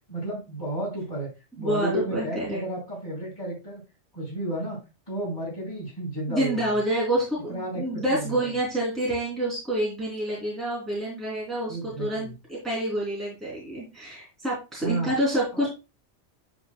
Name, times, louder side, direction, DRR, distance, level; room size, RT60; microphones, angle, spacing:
voice 1, 0.1-1.3 1.6-3.8 4.1-4.8 5.1-6.7 7.5-8.4 11.7-12.3 14.8-15.1 15.5-15.7, right 1 dB, 20° left, -7 dB, 4.3 m, -32 dB
voice 2, 1.6-2.6 6.3-15.7, right 1 dB, ahead, -6 dB, 3.2 m, -28 dB
10.5 x 5.3 x 2.3 m, 0.28 s
omnidirectional pair, 1.2 m